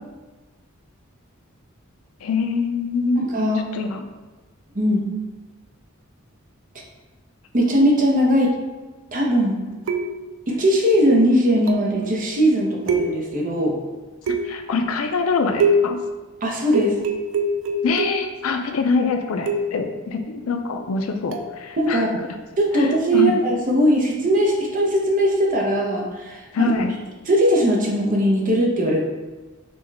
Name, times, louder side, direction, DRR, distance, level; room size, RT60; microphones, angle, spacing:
voice 1, 2.2-3.3 3.7-4.0 8.3-8.4 14.4-16.0 17.8-22.1 22.7-23.4 26.5-26.9, left 4 dB, 90° left, 6 dB, 0.4 m, -24 dB
voice 2, 3.2-3.6 4.7-5.0 7.5-8.5 9.1-9.6 10.5-13.8 16.4-16.9 21.8-22.2 22.6-26.7 27.3-29.1, equal, 40° right, 0 dB, 0.7 m, -19 dB
sound 1, 9.9-10.4 11.7-12.0 12.9-13.5 14.3-14.8 15.6-16.1 16.7-18.4 19.5-19.9 21.3-21.5, right 1 dB, 70° right, 0.4 m, -23 dB
5.2 x 2.3 x 3.3 m, 1.2 s
head